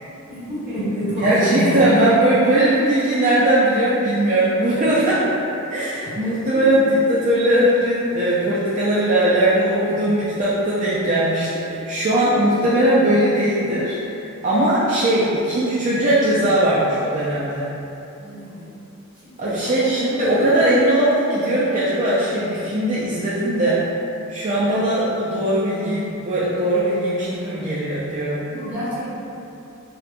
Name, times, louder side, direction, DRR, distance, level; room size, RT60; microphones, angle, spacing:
voice 1, 0.3-1.8 6.2-6.7 18.2-18.7 19.6-20.0 24.7-24.8 28.4-29.1, equal, 5° right, -14 dB, 1.3 m, -27 dB
voice 2, 1.2-17.7 19.4-23.8 24.3-28.5, right 1 dB, 35° right, -9 dB, 0.4 m, -19 dB
4.2 x 2.2 x 2.5 m, 2.8 s
head